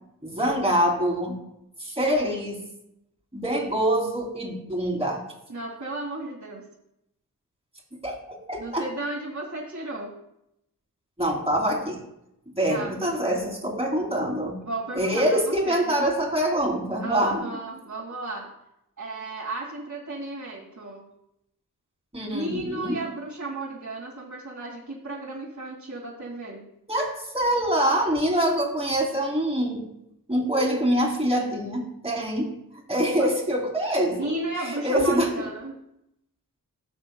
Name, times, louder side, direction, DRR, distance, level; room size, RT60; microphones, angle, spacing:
voice 1, 0.2-1.4 1.8-2.6 3.3-5.2 8.0-8.9 11.2-12.0 12.6-14.6 14.9-17.4 22.1-23.0 26.9-29.8 30.3-32.5 32.9-34.3 34.6-35.5, equal, 15° right, 0 dB, 3.0 m, -25 dB
voice 2, 5.5-6.6 8.6-10.1 12.7-12.9 14.6-15.9 17.0-18.5 19.0-21.0 22.3-26.6 33.2-33.3 34.1-35.8, right 2 dB, 55° right, -5 dB, 2.2 m, -34 dB
19.0 x 6.7 x 2.2 m, 0.82 s
cardioid pair, 65°, 34 cm